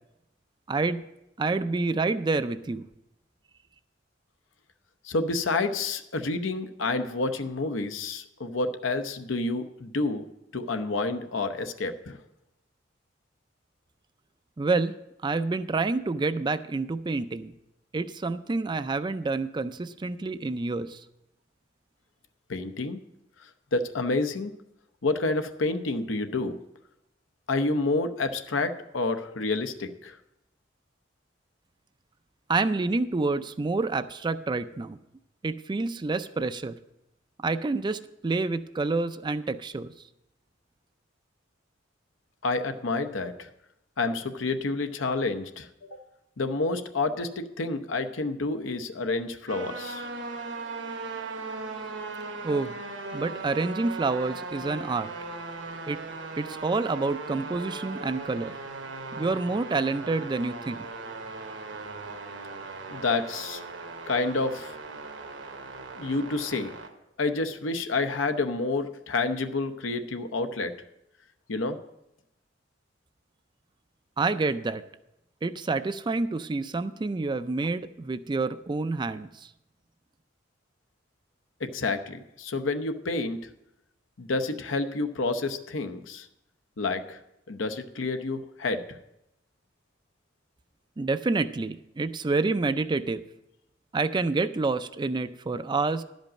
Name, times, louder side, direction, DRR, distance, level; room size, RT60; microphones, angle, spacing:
voice 1, 0.7-1.0 1.4-2.9 14.6-14.9 15.2-17.5 17.9-21.0 32.5-35.0 35.4-36.8 37.4-39.9 52.4-52.8 53.1-55.1 55.9-56.0 56.4-58.5 59.2-60.9 74.2-74.8 75.4-79.5 91.0-93.2 93.9-96.0, right 3 dB, 25° right, 12 dB, 0.4 m, -28 dB
voice 2, 5.0-10.2 10.5-12.2 22.5-23.0 23.7-24.5 25.0-26.6 27.5-30.2 42.4-43.5 44.0-46.0 46.4-50.1 62.9-63.6 64.1-64.7 66.0-66.7 67.2-70.7 71.5-71.8 81.6-83.5 84.2-86.3 86.8-87.2 87.5-88.8, left 3 dB, 80° left, 9 dB, 0.8 m, -29 dB
sound 1, 49.5-66.9, right 3 dB, 70° right, 1.2 m, -38 dB
11.5 x 5.3 x 7.3 m, 0.87 s
head